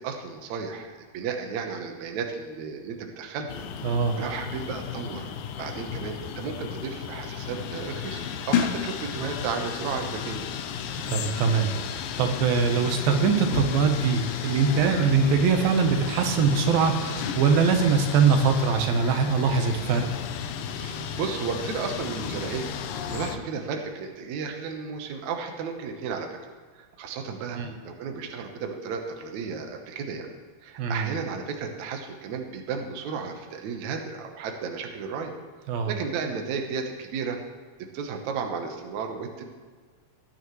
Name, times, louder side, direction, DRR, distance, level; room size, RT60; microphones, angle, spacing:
voice 1, 0.0-3.5 3.8-5.3 5.6-10.4 20.8-22.7 23.1-26.4 26.7-30.3 30.6-35.3 35.9-37.4 37.9-39.4, right 5 dB, 65° right, 4 dB, 2.2 m, -33 dB
sound 1, 3.5-23.4, left 7 dB, 80° left, 2.4 m, -33 dB
voice 2, 3.8-4.2 11.1-20.1 27.6-27.7 30.8-31.1 35.7-35.9, right 5 dB, 90° right, 5 dB, 2.9 m, -22 dB
19.5 x 9.6 x 3.2 m, 1.5 s
omnidirectional pair, 4.0 m